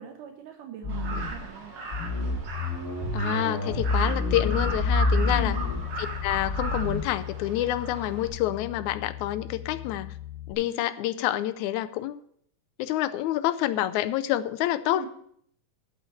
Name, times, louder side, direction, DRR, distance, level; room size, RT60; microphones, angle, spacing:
voice 1, 0.0-1.7 5.3-5.7 14.9-15.1, right 10 dB, 80° right, 4 dB, 2.4 m, -41 dB
sound 1, 0.8-1.5 1.9-7.0, left 2 dB, 25° left, 3.0 m, -28 dB
Crow, 0.9-8.3, right 3 dB, 50° right, 2.3 m, -37 dB
voice 2, 3.1-5.6 6.0-10.2 10.5-12.2 12.8-15.1, left 13 dB, 80° left, 13 dB, 1.9 m, -28 dB
Bass guitar, 4.3-10.5, left 13 dB, 65° left, 3.1 m, -38 dB
8.5 x 6.5 x 8.3 m, 0.66 s
omnidirectional pair, 3.6 m